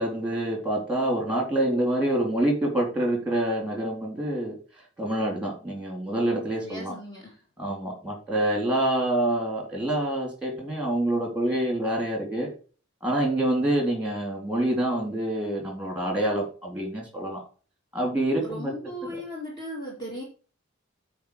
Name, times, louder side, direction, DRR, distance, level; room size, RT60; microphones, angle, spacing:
voice 1, 0.0-4.6 5.0-7.0 7.6-12.5 13.0-17.4 17.9-18.7 19.0-19.2, right 1 dB, 5° right, 1 dB, 3.7 m, -26 dB
voice 2, 6.6-7.4 18.4-20.2, equal, 20° left, -2 dB, 2.4 m, -37 dB
9.2 x 4.8 x 6.3 m, 0.38 s
head